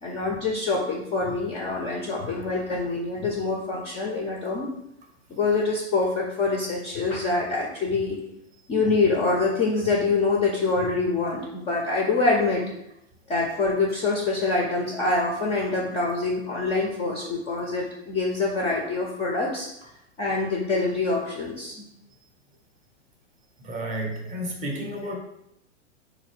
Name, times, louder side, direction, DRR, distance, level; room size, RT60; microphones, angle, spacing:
voice 1, 0.0-4.7 5.3-8.2 8.7-12.6 13.3-19.7 20.2-21.9, left 3 dB, 20° left, -2 dB, 0.3 m, -25 dB
voice 2, 23.6-25.2, right 1 dB, 20° right, 2 dB, 0.6 m, -31 dB
3.9 x 2.6 x 3.0 m, 0.80 s
hypercardioid pair, 115°, 36 cm